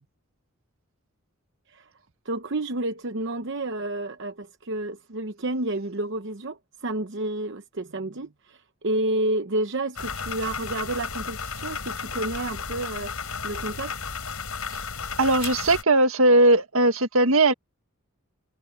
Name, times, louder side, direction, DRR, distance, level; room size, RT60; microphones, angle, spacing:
voice 1, 2.2-13.1 13.4-14.0, right 2 dB, 55° right, 0.9 m, -30 dB
sound 1, 10.0-15.8, left 5 dB, 85° left, 6.8 m, -33 dB
voice 2, 15.2-17.5, right 2 dB, 75° right, 1.7 m, -19 dB
head